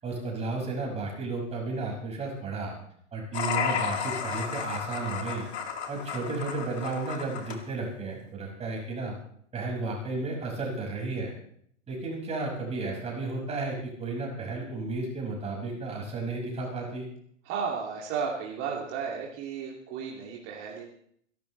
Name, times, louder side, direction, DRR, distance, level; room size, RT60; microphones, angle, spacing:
voice 1, 0.0-2.7 3.1-5.5 5.9-9.2 9.5-11.3 11.9-17.1, right 3 dB, 15° right, -1 dB, 5.9 m, -33 dB
sound 1, 3.3-7.6, left 7 dB, 60° left, 2.4 m, -33 dB
voice 2, 17.4-20.8, right 6 dB, 35° right, -2 dB, 2.6 m, -33 dB
28.5 x 12.0 x 3.3 m, 0.66 s
figure-of-eight pair, 105°, 37 cm